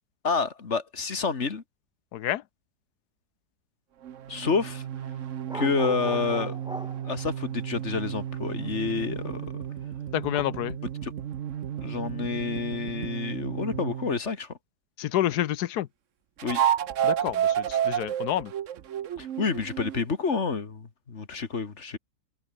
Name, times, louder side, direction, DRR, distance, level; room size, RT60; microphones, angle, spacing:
voice 1, 0.2-1.6 4.3-4.8 5.5-6.6 7.1-9.6 11.0-11.1 11.8-14.6 16.4-16.6 19.2-22.0, left 5 dB, 45° left, 2.2 m, -29 dB
voice 2, 2.1-2.4 10.1-10.8 15.0-15.9 17.0-18.5, left 12 dB, 90° left, 1.3 m, -28 dB
sound 1, 4.0-14.2 16.4-20.0, right 10 dB, 60° right, 1.1 m, -32 dB
sound 2, 5.5-7.2 10.3-10.4, right 1 dB, 5° right, 0.5 m, -38 dB
omnidirectional pair, 1.6 m